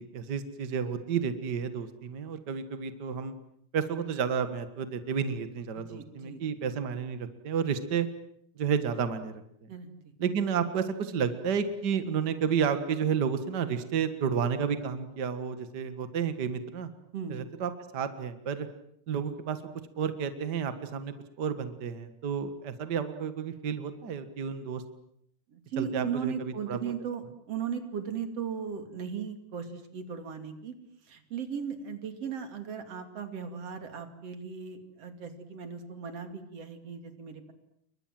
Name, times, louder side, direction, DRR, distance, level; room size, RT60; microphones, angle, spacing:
voice 1, 0.0-3.3 3.7-8.1 8.5-9.3 9.6-9.7 10.2-16.9 17.3-18.7 19.1-19.6 20.0-24.8 25.8-26.9, right 7 dB, 65° right, 10 dB, 1.0 m, -31 dB
voice 2, 5.8-6.4 9.7-10.1 17.1-17.4 25.5-30.8 31.0-37.5, right 7 dB, 40° right, 8 dB, 3.2 m, -37 dB
29.5 x 23.5 x 7.7 m, 0.71 s
omnidirectional pair, 4.6 m